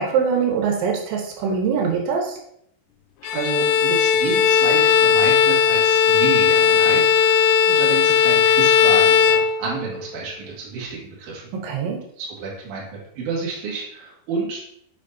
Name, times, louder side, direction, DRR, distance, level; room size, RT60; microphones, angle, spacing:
voice 1, 0.0-2.4 11.5-12.0, right 6 dB, 85° right, 0 dB, 3.5 m, -23 dB
Bowed string instrument, 3.2-10.0, left 7 dB, 85° left, 2.5 m, -17 dB
voice 2, 3.3-11.4 12.2-12.8 13.1-14.6, right 4 dB, 50° right, -5 dB, 3.0 m, -30 dB
8.4 x 6.1 x 2.7 m, 0.73 s
omnidirectional pair, 5.2 m